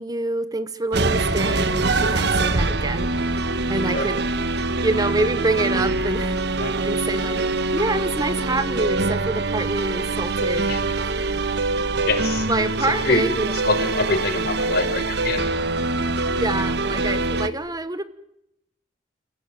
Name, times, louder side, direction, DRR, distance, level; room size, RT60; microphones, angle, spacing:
voice 1, 0.0-3.4 3.7-4.2 4.8-7.4 7.7-10.7 11.0-11.1 12.5-13.5 16.3-18.0, right 2 dB, 20° right, 13 dB, 1.1 m, -26 dB
sound 1, 0.9-17.5, right 3 dB, 65° right, 1.4 m, -24 dB
voice 2, 12.1-12.5 13.0-13.2 13.6-15.5, left 2 dB, 60° left, 6 dB, 5.5 m, -24 dB
28.5 x 17.0 x 9.0 m, 0.80 s
head